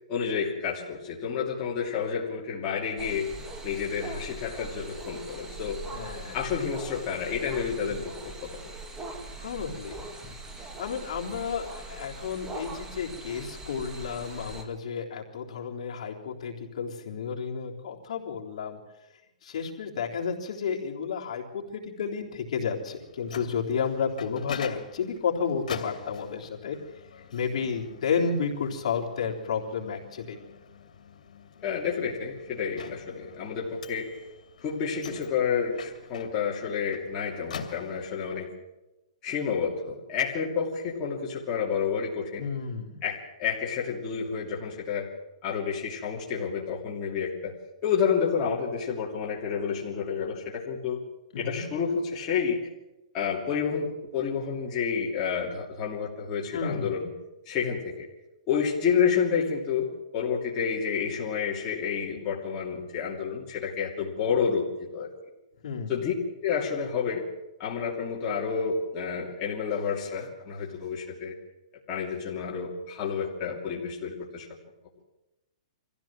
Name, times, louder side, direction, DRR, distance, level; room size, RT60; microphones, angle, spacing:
voice 1, 0.1-3.3 3.6-5.8 6.3-8.6 31.6-34.1 34.6-38.5 39.2-42.5 43.0-45.1 45.4-47.5 47.8-51.0 51.4-52.6 53.1-57.1 57.5-58.1 58.5-65.1 65.9-66.1 66.4-67.2 67.6-71.3 71.9-74.5, left 6 dB, 25° left, -4 dB, 2.9 m, -29 dB
sound 1, 3.0-14.6, right 2 dB, 15° right, 2.0 m, -41 dB
voice 2, 5.9-6.4 9.4-10.0 10.8-18.8 19.4-26.8 27.3-30.4 42.4-43.0 51.3-51.7 56.5-57.0 65.6-66.0, left 6 dB, 55° left, -1 dB, 3.6 m, -31 dB
Microwave oven, 22.9-38.4, left 6 dB, 75° left, 2.6 m, -45 dB
24.0 x 15.5 x 7.5 m, 0.98 s
hypercardioid pair, 160°, 4 cm